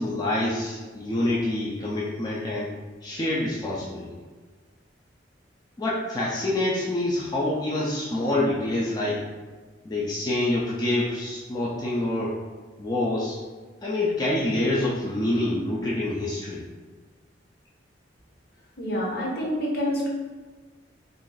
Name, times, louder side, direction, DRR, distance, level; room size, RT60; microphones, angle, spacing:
voice 1, 0.0-2.7 3.0-4.1 5.8-9.3 9.8-12.4 12.8-13.4 13.8-16.6, left 1 dB, 20° left, -6 dB, 0.3 m, -26 dB
voice 2, 18.8-20.1, equal, 55° left, -3 dB, 0.8 m, -27 dB
2.5 x 2.3 x 3.7 m, 1.4 s
head